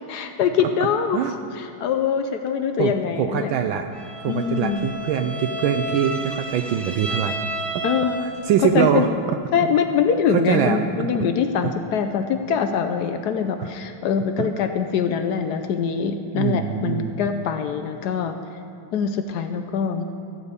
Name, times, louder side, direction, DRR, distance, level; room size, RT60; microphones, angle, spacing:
voice 1, 0.1-1.2 1.5-3.5 4.3-4.8 7.8-8.2 8.7-9.2 9.5-18.4 18.9-20.0, left 7 dB, 80° left, 7 dB, 0.9 m, -23 dB
voice 2, 2.8-3.9 4.2-7.3 8.2-9.4 10.3-11.1 11.6-11.7 13.6-13.7 14.4-14.5 16.3-17.1, right 9 dB, 75° right, 5 dB, 1.2 m, -23 dB
Bowed string instrument, 3.9-8.6, right 1 dB, ahead, 0.4 m, -31 dB
15.5 x 5.3 x 8.2 m, 2.6 s
omnidirectional pair, 2.4 m